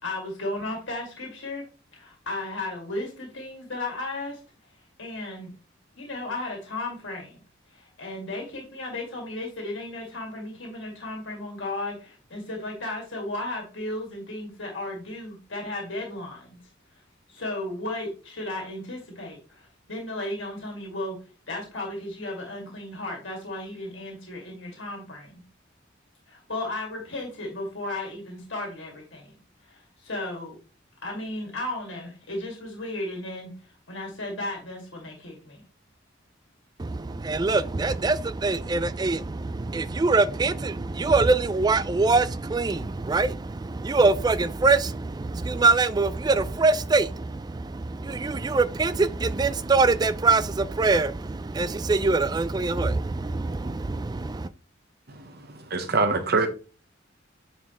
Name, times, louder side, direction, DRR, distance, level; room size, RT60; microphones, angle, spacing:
voice 1, 0.0-1.6 1.9-4.4 5.0-5.5 6.0-7.4 7.7-16.6 17.3-21.2 21.5-25.4 26.3-29.3 29.6-30.6 31.0-35.6, left 2 dB, 65° left, 2.2 m, -35 dB
voice 2, 36.8-54.5, right 3 dB, 20° right, 0.3 m, -24 dB
voice 3, 55.1-56.5, right 3 dB, 55° right, 0.9 m, -25 dB
9.4 x 4.3 x 3.1 m
head